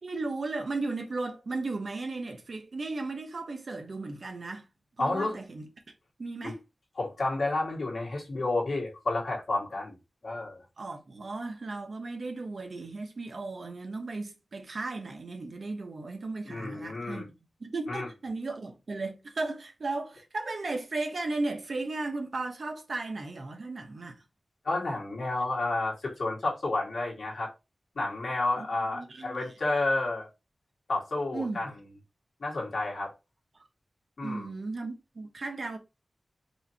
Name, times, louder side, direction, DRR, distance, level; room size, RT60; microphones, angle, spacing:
voice 1, 0.0-4.7 5.0-5.7 6.2-6.6 10.8-24.2 28.6-28.7 28.9-29.5 31.3-31.7 34.2-35.8, right 3 dB, 65° right, 1.0 m, -35 dB
voice 2, 5.0-5.4 6.4-6.5 7.0-10.0 10.2-10.6 16.5-17.2 17.9-18.1 24.6-27.5 28.0-30.3 30.9-31.7 32.4-33.1 34.2-34.5, left 2 dB, 75° left, 1.9 m, -30 dB
4.7 x 2.7 x 2.8 m
wide cardioid pair, 65°, 0 cm